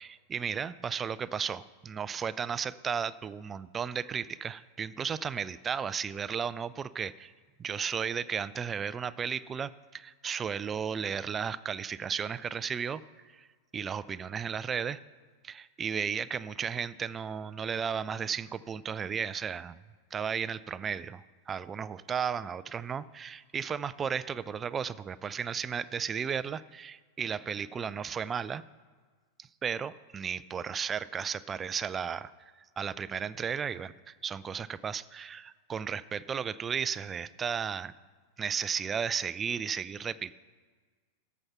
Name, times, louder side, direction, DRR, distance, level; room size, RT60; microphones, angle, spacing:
voice 1, 0.0-7.3 7.6-13.0 13.3-13.5 13.7-15.0 15.4-19.8 20.1-28.6 29.4-32.3 32.8-37.9 38.4-40.3, right 7 dB, 20° right, 16 dB, 0.4 m, -34 dB
14.0 x 6.0 x 5.6 m, 1.5 s
figure-of-eight pair, 90°, 0 cm